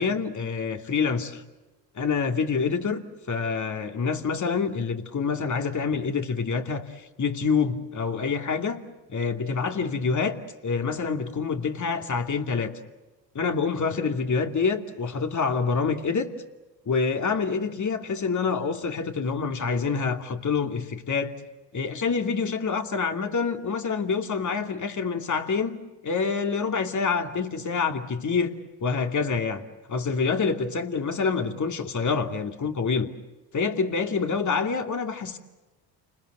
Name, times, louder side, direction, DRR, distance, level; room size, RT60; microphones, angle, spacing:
voice 1, 0.0-1.4 1.9-8.8 9.1-10.4 10.6-12.7 13.3-16.3 16.9-21.3 21.7-25.8 26.0-29.6 29.9-33.1 33.5-35.4, left 5 dB, 35° left, 5 dB, 2.7 m, -27 dB
29.5 x 21.0 x 8.0 m, 1.1 s
hypercardioid pair, 65°, 49 cm